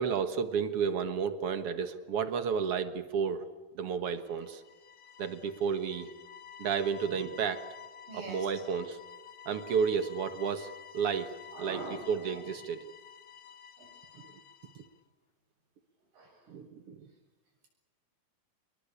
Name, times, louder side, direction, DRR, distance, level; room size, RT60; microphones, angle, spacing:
voice 1, 0.0-3.5 3.8-4.6 5.2-6.1 6.6-7.7 8.1-9.0 9.5-11.3 11.6-12.9 14.2-14.3 14.8-14.9 16.5-17.1, right 6 dB, 55° right, 11 dB, 1.8 m, -32 dB
sound 1, 4.2-15.0, left 8 dB, 55° left, 1.2 m, -51 dB
voice 2, 8.1-8.5 11.5-12.4 13.8-13.9 16.1-16.5, right 2 dB, 85° right, 2 dB, 9.3 m, -44 dB
27.5 x 22.0 x 8.4 m, 1.2 s
omnidirectional pair, 3.9 m